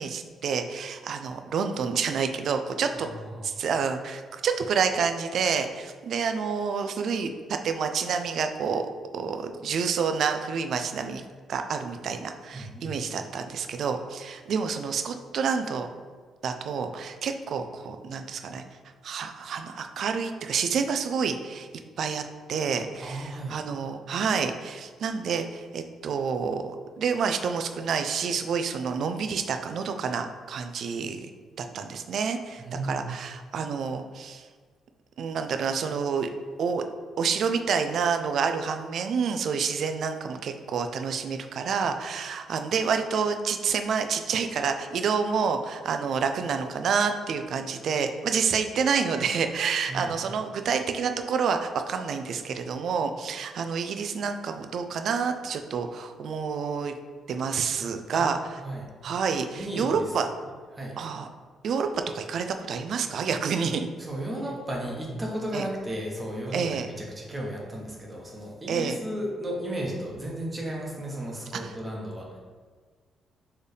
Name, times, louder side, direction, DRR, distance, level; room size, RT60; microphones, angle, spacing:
voice 1, 0.0-3.1 3.4-8.8 9.1-15.9 16.4-18.6 19.0-21.7 22.0-22.2 22.5-26.6 27.0-31.3 31.6-34.5 35.2-36.3 36.6-36.8 37.2-56.9 57.3-58.4 59.0-60.3 61.0-61.3 61.6-63.9 65.5-65.7 66.5-66.9 68.7-69.0 71.6-71.7, right 6 dB, 65° right, 7 dB, 0.4 m, -28 dB
voice 2, 2.9-3.5 12.5-12.9 23.0-23.6 32.6-33.1 49.9-50.1 58.1-58.2 58.6-58.9 59.5-60.1 60.7-61.0 64.0-72.4, right 1 dB, 25° right, -2 dB, 1.0 m, -34 dB
4.4 x 3.2 x 3.3 m, 1.5 s
cardioid pair, 90°, 0 cm